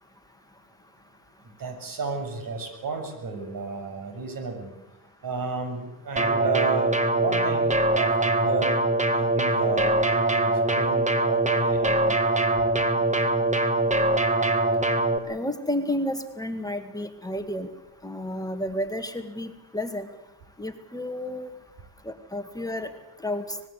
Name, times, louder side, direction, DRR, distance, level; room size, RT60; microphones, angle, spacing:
voice 1, 1.6-4.7 5.2-8.8 9.1-12.2, right 5 dB, 55° right, 6 dB, 7.0 m, -32 dB
sound 1, 6.2-15.2, right 2 dB, 15° right, 2.1 m, -23 dB
voice 2, 15.3-17.7 18.0-20.1 20.6-21.5 22.0-22.9 23.2-23.6, left 1 dB, 10° left, 6 dB, 1.9 m, -31 dB
25.5 x 20.5 x 8.3 m, 0.93 s
cardioid pair, 120°, 40 cm